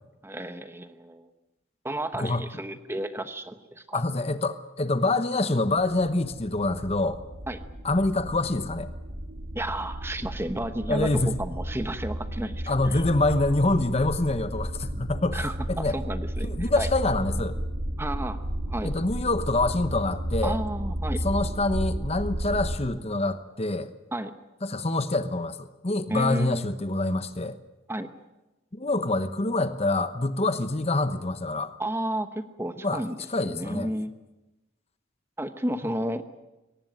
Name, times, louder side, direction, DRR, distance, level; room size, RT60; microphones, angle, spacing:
voice 1, 0.2-1.3 1.8-4.0 7.5-7.6 9.5-13.0 15.3-16.9 18.0-18.4 18.7-18.9 20.4-21.3 24.1-24.3 26.1-26.6 27.9-28.1 31.8-34.1 35.4-36.2, right 1 dB, 10° right, 9 dB, 1.0 m, -32 dB
voice 2, 3.9-7.2 7.8-8.9 10.9-11.4 12.7-16.0 16.4-17.6 18.8-20.6 21.2-23.9 24.6-27.6 28.7-31.7 32.8-33.0 33.3-33.9, left 2 dB, 30° left, 11 dB, 1.0 m, -26 dB
sound 1, 5.8-22.8, right 1 dB, 75° right, 2.9 m, -33 dB
23.0 x 18.5 x 9.2 m, 1.0 s
head